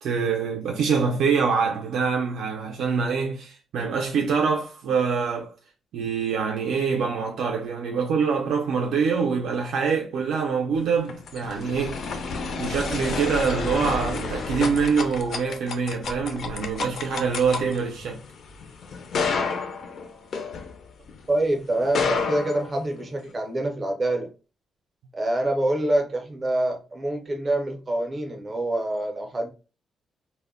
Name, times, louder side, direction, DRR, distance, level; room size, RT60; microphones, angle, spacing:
voice 1, 0.0-5.5 5.9-12.0 12.6-18.2, right 5 dB, 80° right, 0.4 m, -25 dB
sound 1, 10.8-21.2 21.8-23.3, left 4 dB, 50° left, 0.3 m, -30 dB
voice 2, 21.3-24.3 25.1-29.5, right 1 dB, 20° right, 0.5 m, -26 dB
2.1 x 2.0 x 3.4 m
wide cardioid pair, 175°, 0 cm